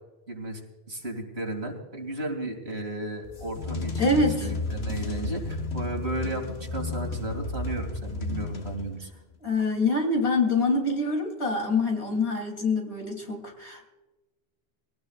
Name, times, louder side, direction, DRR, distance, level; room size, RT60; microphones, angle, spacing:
voice 1, 0.3-0.6 0.9-9.1, right 1 dB, 75° right, 2 dB, 3.0 m, -34 dB
sound 1, 3.2-9.2, left 3 dB, 75° left, 1.5 m, -33 dB
voice 2, 4.0-4.5 9.4-13.9, left 3 dB, 90° left, 2 dB, 3.5 m, -25 dB
22.0 x 17.5 x 2.5 m, 1.1 s
omnidirectional pair, 1.1 m